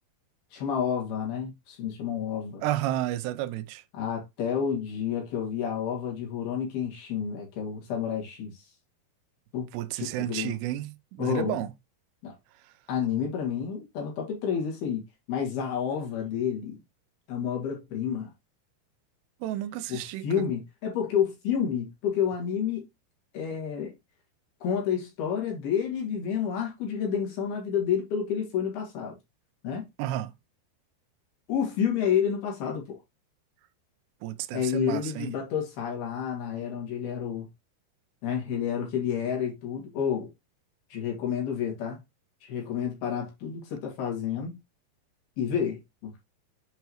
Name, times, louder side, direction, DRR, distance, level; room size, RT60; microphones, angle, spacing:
voice 1, 0.5-2.7 3.9-8.7 9.5-9.7 10.0-10.6 11.2-11.7 12.2-12.3 12.9-15.0 15.3-16.8 17.3-18.3 19.9-22.9 23.3-24.0 24.6-29.2 29.6-29.9 31.5-33.0 34.5-37.5 38.2-40.3 40.9-42.0 42.4-44.6 45.4-46.2, left 8 dB, 65° left, 3.9 m, -30 dB
voice 2, 2.6-3.8 9.7-11.7 19.4-20.4 30.0-30.3 34.2-35.3, right 14 dB, 85° right, 2.7 m, -31 dB
8.0 x 4.6 x 3.0 m
omnidirectional pair, 4.9 m